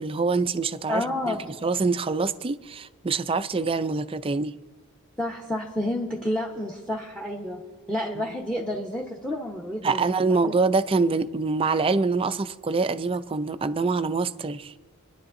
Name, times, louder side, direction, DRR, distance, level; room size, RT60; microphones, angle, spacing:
voice 1, 0.0-4.5 8.2-8.3 9.8-14.7, right 4 dB, 25° right, 0.4 m, -25 dB
voice 2, 0.9-1.5 5.2-7.6 7.9-10.5, left 1 dB, 5° left, 1.0 m, -30 dB
26.5 x 10.5 x 2.6 m
head